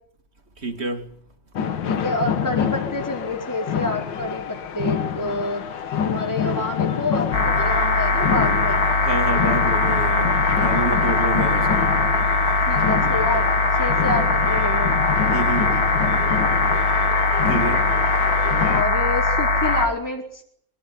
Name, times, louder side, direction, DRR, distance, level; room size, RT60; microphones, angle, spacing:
voice 1, 0.6-1.2 9.0-11.9 15.3-15.8 17.4-17.9, right 2 dB, 35° right, 2.8 m, -28 dB
sound 1, 1.6-18.8, left 8 dB, 75° left, 2.0 m, -27 dB
voice 2, 1.9-5.7 6.0-8.8 12.7-13.5 13.8-14.9 18.7-20.4, left 1 dB, 10° left, 4.4 m, -28 dB
sound 2, 7.3-19.9, left 3 dB, 50° left, 3.1 m, -20 dB
24.5 x 18.5 x 9.7 m
omnidirectional pair, 2.1 m